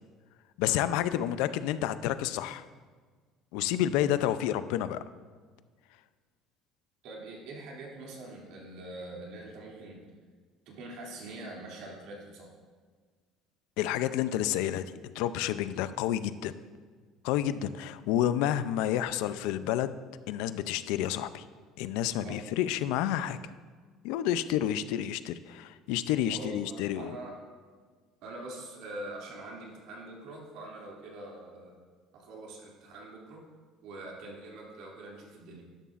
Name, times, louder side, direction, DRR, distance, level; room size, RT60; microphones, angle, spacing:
voice 1, 0.6-2.6 3.5-5.0 13.8-16.5 17.2-20.0 20.3-21.4 21.8-23.4 24.0-27.2, left 11 dB, 80° left, 13 dB, 0.4 m, -30 dB
voice 2, 7.0-10.0 10.7-12.5 22.2-22.4 26.3-27.4 28.2-31.7 32.1-33.4 33.8-35.7, right 2 dB, 65° right, -2 dB, 2.6 m, -44 dB
12.5 x 11.0 x 2.5 m, 1.5 s
cardioid pair, 175°, 0 cm